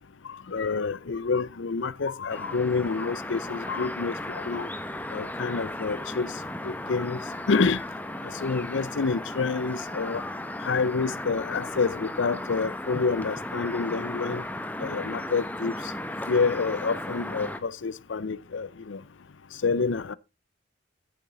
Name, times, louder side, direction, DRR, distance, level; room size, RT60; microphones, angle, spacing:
voice 1, 0.5-4.7 5.1-6.3 6.6-7.8 8.2-10.2 10.6-14.4 14.8-15.7 16.3-19.0 19.6-20.1, left 4 dB, 65° left, 0.6 m, -28 dB
sound 1, 2.3-17.6, left 1 dB, 10° left, 0.8 m, -35 dB
14.0 x 7.1 x 4.0 m
head